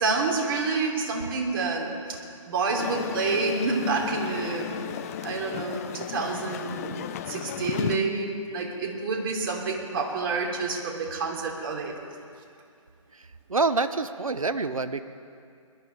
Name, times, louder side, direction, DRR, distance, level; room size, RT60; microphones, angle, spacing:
voice 1, 0.0-4.7 5.2-7.0 7.3-11.9, right 3 dB, 45° right, -1 dB, 3.0 m, -28 dB
sound 1, 2.8-8.0, left 11 dB, 25° left, 0.5 m, -34 dB
voice 2, 13.5-15.0, right 3 dB, 90° right, 11 dB, 0.8 m, -26 dB
21.0 x 12.5 x 4.5 m, 2.3 s
figure-of-eight pair, 140°, 17 cm